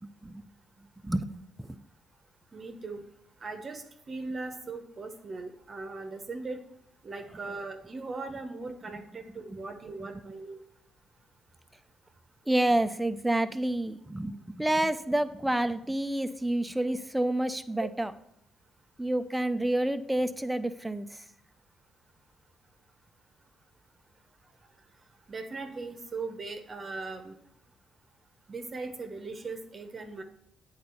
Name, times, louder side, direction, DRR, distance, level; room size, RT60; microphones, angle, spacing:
voice 1, 0.0-0.4 1.0-1.3 1.6-1.8 9.5-9.6 10.0-10.1 12.5-18.1 19.0-21.2, right 1 dB, 10° right, 10 dB, 0.6 m, -29 dB
voice 2, 2.5-3.0 3.4-6.6 7.0-10.6 17.8-17.9 25.3-27.3 28.5-30.2, right 3 dB, 40° right, 5 dB, 0.9 m, -39 dB
8.6 x 4.0 x 6.9 m, 0.72 s
cardioid pair, 90°, 0 cm